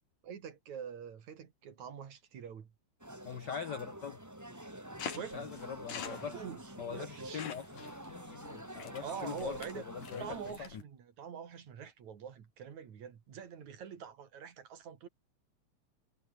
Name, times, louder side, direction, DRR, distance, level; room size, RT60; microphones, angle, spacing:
voice 1, 0.2-2.7 5.1-5.5 6.1-6.6 6.9-7.5 9.0-9.8 10.2-15.1, right 7 dB, 65° right, 3.7 m, -45 dB
sound 1, 3.0-10.5, right 1 dB, 5° right, 2.3 m, -48 dB
voice 2, 3.2-4.2 5.1-6.4 6.8-7.8 8.8-10.7, left 7 dB, 70° left, 1.0 m, -42 dB
sound 2, 5.0-10.8, left 7 dB, 85° left, 4.5 m, -46 dB
omnidirectional pair, 3.5 m